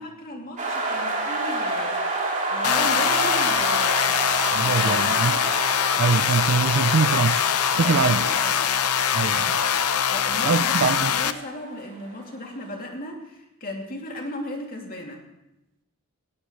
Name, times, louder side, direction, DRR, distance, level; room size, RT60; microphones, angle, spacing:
voice 1, 0.0-2.0 2.4-4.2 4.6-5.5 7.8-8.6 10.1-15.2, left 1 dB, 40° left, 2.7 m, -36 dB
sound 1, 0.6-12.3, right 2 dB, 35° right, 3.3 m, -30 dB
sound 2, 2.6-11.3, left 8 dB, 80° left, 0.7 m, -23 dB
voice 2, 4.5-5.4 6.0-7.4 7.8-8.2 9.1-9.6 10.4-11.1, right 5 dB, 55° right, 0.4 m, -23 dB
18.5 x 17.5 x 3.2 m
head